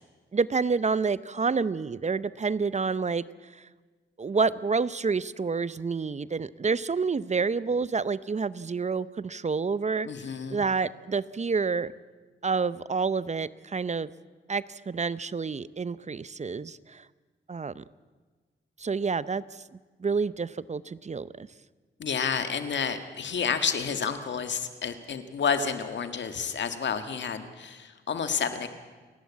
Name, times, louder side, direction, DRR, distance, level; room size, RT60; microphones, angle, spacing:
voice 1, 0.3-3.2 3.5-3.6 4.2-10.1 10.5-11.9 12.4-14.1 14.5-17.1 17.5-17.8 18.8-19.4 20.0-21.5, right 5 dB, 35° right, 17 dB, 0.7 m, -28 dB
voice 2, 10.0-10.6 22.0-28.7, left 6 dB, 70° left, 8 dB, 1.7 m, -30 dB
29.5 x 11.5 x 8.6 m, 1.4 s
cardioid pair, 60°, 19 cm